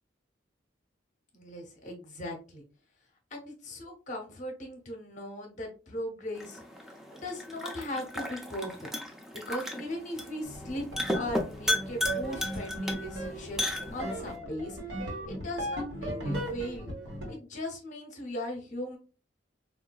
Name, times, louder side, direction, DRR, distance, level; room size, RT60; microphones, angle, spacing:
voice 1, 1.3-2.6 3.3-8.9 9.3-10.9 11.2-13.7 13.9-16.9 17.3-19.0, left 1 dB, 40° left, 2 dB, 0.7 m, -39 dB
sound 1, 6.3-14.4, left 1 dB, ahead, 0.4 m, -35 dB
sound 2, 10.4-17.3, right 1 dB, 75° right, 1.1 m, -37 dB
3.7 x 2.3 x 2.2 m, 0.34 s
head